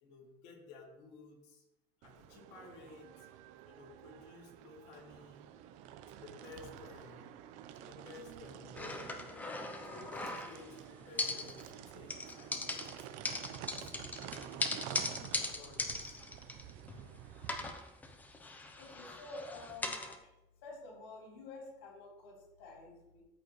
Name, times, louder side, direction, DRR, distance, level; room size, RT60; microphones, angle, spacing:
voice 1, 0.0-1.6 2.0-3.3 3.6-5.5 6.1-7.3 7.7-9.3 9.8-13.0 13.5-14.7 15.1-16.2, left 4 dB, 60° left, -2 dB, 2.6 m, -55 dB
sound 1, 2.0-17.7, right 10 dB, 65° right, 0.7 m, -50 dB
sound 2, 8.7-10.8 11.2-11.8 12.1-17.1 17.4-20.2, left 3 dB, 15° left, 0.8 m, -40 dB
voice 2, 18.8-20.3 20.6-23.2, left 2 dB, 80° left, -3 dB, 3.3 m, -50 dB
13.5 x 4.7 x 3.3 m, 0.94 s
supercardioid pair, 135°, 13 cm